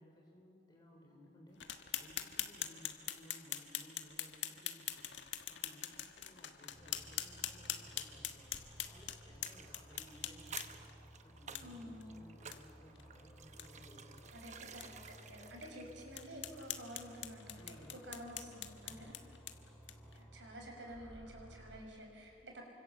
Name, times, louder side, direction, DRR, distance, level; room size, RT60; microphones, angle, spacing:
voice 1, 0.0-8.5 8.9-10.9 11.2-14.4 17.6-18.1 18.9-19.3, equal, 25° left, -1 dB, 3.7 m, -60 dB
sound 1, 1.6-10.9 11.5-11.6 12.0-12.1 12.5-12.6 13.0-13.1 13.4-13.7 14.2-14.3 14.8-14.9 15.4-15.5 16.1-20.2, left 11 dB, 90° left, 1.5 m, -43 dB
sound 2, 6.7-21.8, equal, 5° left, 5.7 m, -58 dB
sound 3, 9.4-17.0 17.3-17.4, right 6 dB, 40° right, 1.1 m, -54 dB
voice 2, 11.6-12.2 14.3-19.2 20.1-22.6, equal, 85° right, 2 dB, 6.2 m, -50 dB
29.0 x 25.5 x 7.4 m, 2.3 s
head